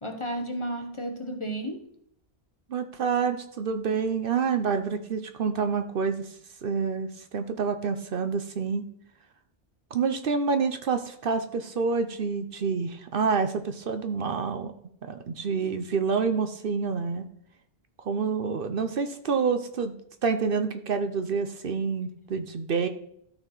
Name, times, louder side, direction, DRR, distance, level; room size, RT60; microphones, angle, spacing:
voice 1, 0.0-1.9, right 1 dB, 30° left, 5 dB, 0.9 m, -33 dB
voice 2, 2.7-6.3 6.6-8.8 9.9-14.7 15.0-17.2 18.1-19.9 20.2-22.9, right 5 dB, 60° right, 8 dB, 0.9 m, -28 dB
13.0 x 4.6 x 3.9 m, 0.69 s
omnidirectional pair, 1.1 m